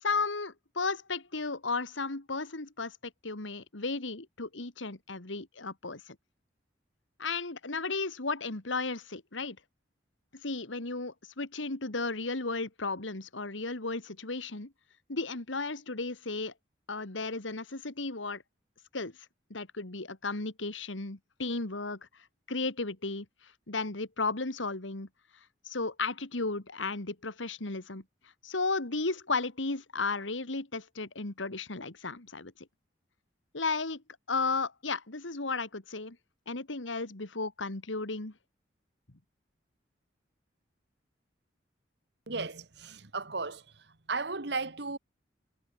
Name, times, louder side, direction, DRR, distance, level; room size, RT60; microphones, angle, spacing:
voice 1, 0.0-6.2 7.2-9.6 10.3-14.7 15.1-16.5 16.9-18.4 18.9-19.1 19.5-22.0 22.5-25.1 25.7-28.0 28.4-32.5 33.5-36.2 36.5-38.3, left 3 dB, 90° left, 2.2 m, -34 dB
voice 2, 42.3-43.6 44.1-45.0, right 3 dB, 65° right, 1.7 m, -35 dB
head